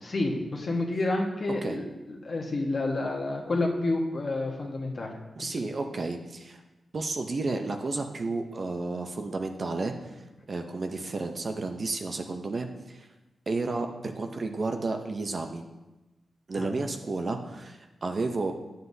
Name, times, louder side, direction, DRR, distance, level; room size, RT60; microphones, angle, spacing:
voice 1, 0.0-5.1 16.6-16.7, left 2 dB, 40° left, 0 dB, 1.2 m, -29 dB
voice 2, 5.4-6.6 6.9-10.1 10.5-13.1 13.5-15.6 16.5-18.5, right 3 dB, 40° right, 5 dB, 0.6 m, -32 dB
11.5 x 7.9 x 2.7 m, 1.1 s
wide cardioid pair, 145°, 0 cm